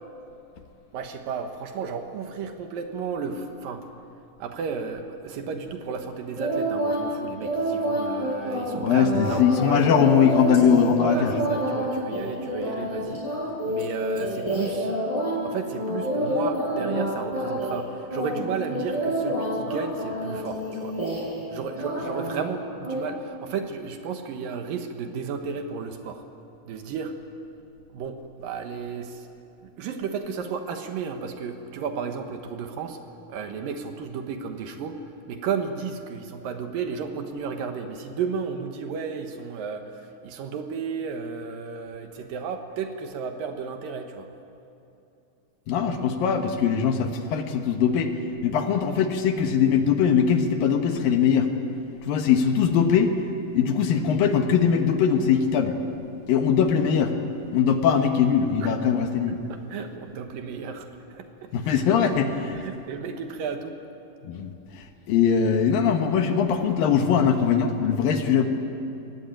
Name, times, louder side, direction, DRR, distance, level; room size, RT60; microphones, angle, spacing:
voice 1, 0.9-3.8 4.4-9.9 11.0-13.2 13.7-14.9 15.4-21.0 21.5-26.2 26.7-27.2 27.9-29.3 29.6-33.0 33.3-35.0 35.3-44.3 58.6-58.7 59.5-61.7 62.5-63.8, right 5 dB, 70° right, 6 dB, 2.8 m, -33 dB
sound 1, 6.4-7.1 7.4-15.4 15.8-17.1 17.3-17.8 18.1-21.5 21.8-22.4 22.8-23.0, equal, 10° right, 7.5 m, -28 dB
voice 2, 8.8-11.4 45.7-48.1 48.4-51.5 52.1-53.1 53.5-55.8 56.3-57.1 57.5-59.4 61.5-62.6 64.2-68.5, left 7 dB, 70° left, 6 dB, 2.9 m, -21 dB
23.5 x 18.5 x 9.2 m, 2.9 s
omnidirectional pair, 4.4 m